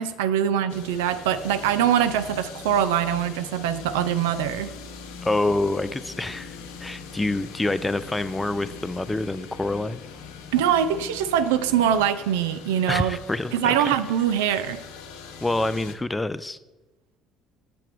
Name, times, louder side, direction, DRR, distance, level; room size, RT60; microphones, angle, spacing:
voice 1, 0.0-4.7 10.5-13.2 13.5-14.8, right 9 dB, 85° right, 12 dB, 0.4 m, -23 dB
sound 1, 0.7-16.0, left 5 dB, 80° left, 0.6 m, -41 dB
voice 2, 5.2-10.0 12.9-13.9 15.4-16.6, left 2 dB, 15° left, 14 dB, 0.4 m, -27 dB
6.9 x 2.9 x 6.0 m, 1.1 s
hypercardioid pair, 70°, 0 cm